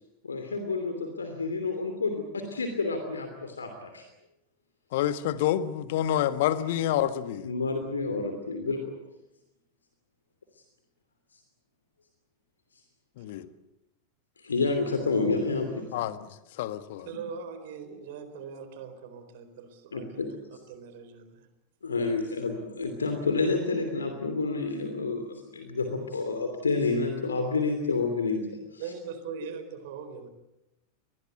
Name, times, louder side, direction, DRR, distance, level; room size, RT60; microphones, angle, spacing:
voice 1, 0.2-4.0 7.4-8.9 14.4-15.9 19.9-20.3 21.8-28.4 28.7-28.8, left 3 dB, 75° left, 2.9 m, -29 dB
voice 2, 4.9-7.5 13.2-13.5 15.9-16.2 16.6-17.1, left 11 dB, 50° left, 1.5 m, -27 dB
voice 3, 17.0-21.5 28.8-30.3, right 6 dB, 50° right, 4.2 m, -41 dB
24.5 x 20.5 x 8.2 m
figure-of-eight pair, 90°, 0 cm